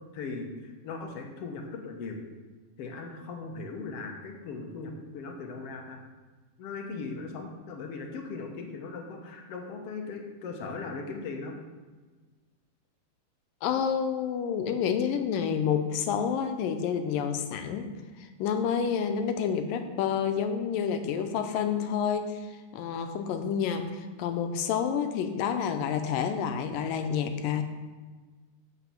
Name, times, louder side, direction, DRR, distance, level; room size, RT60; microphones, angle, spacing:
voice 1, 0.1-2.2 2.8-6.0 6.6-11.5, left 4 dB, 60° left, 2 dB, 1.7 m, -38 dB
voice 2, 13.6-17.9 18.2-22.4 22.7-27.6, left 7 dB, 85° left, 7 dB, 2.4 m, -29 dB
8.1 x 5.7 x 7.1 m, 1.3 s
omnidirectional pair, 4.0 m